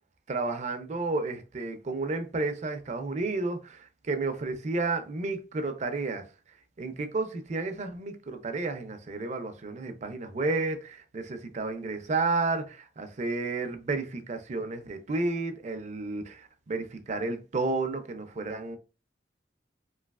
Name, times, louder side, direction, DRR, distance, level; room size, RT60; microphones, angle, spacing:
voice 1, 0.3-6.3 6.8-18.8, right 3 dB, 40° right, 0.5 m, -31 dB
3.1 x 2.8 x 2.3 m
head